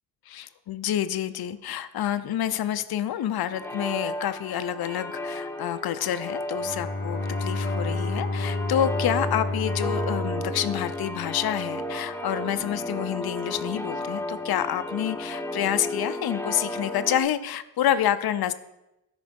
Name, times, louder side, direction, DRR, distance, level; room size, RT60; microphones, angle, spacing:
voice 1, 0.3-18.5, left 10 dB, 70° left, 11 dB, 0.6 m, -28 dB
sound 1, 3.5-17.2, left 1 dB, 5° left, 0.6 m, -34 dB
Bowed string instrument, 6.6-11.8, left 2 dB, 25° left, 1.0 m, -30 dB
13.0 x 5.2 x 5.2 m, 0.92 s
wide cardioid pair, 160°, 38 cm